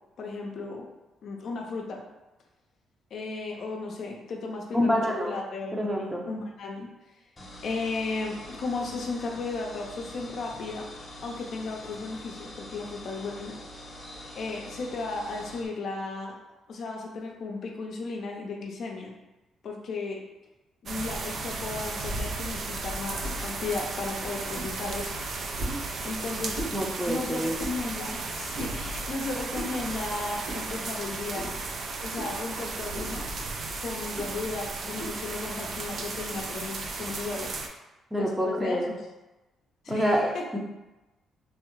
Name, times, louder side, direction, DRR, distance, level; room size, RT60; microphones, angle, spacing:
voice 1, 0.2-0.9 1.2-2.0 3.1-6.9 7.6-10.9 11.2-13.6 14.3-16.3 16.7-19.1 19.6-20.2 20.8-25.1 26.0-26.6 27.1-31.6 32.0-33.3 33.8-37.5 38.1-39.0 39.8-40.4, left 3 dB, 60° left, 0 dB, 0.5 m, -35 dB
voice 2, 4.7-5.4 5.7-6.2 25.7-25.8 26.7-27.6 38.1-38.9 39.9-40.6, equal, 10° right, -1 dB, 0.6 m, -27 dB
sound 1, 7.4-15.7, left 1 dB, 25° left, 0.8 m, -44 dB
sound 2, 20.9-37.7, right 3 dB, 55° right, 0.4 m, -35 dB
sound 3, 23.2-23.4 24.5-24.8 25.6-25.8 26.5-26.8 27.6-27.8 28.5-28.8 29.5-29.8 30.4-30.6 31.3-31.6 32.1-32.4 32.9-33.2 34.1-34.4 35.0-35.2, right 1 dB, 90° right, 1.5 m, -37 dB
3.3 x 2.3 x 3.0 m, 1.0 s
cardioid pair, 90°, 0 cm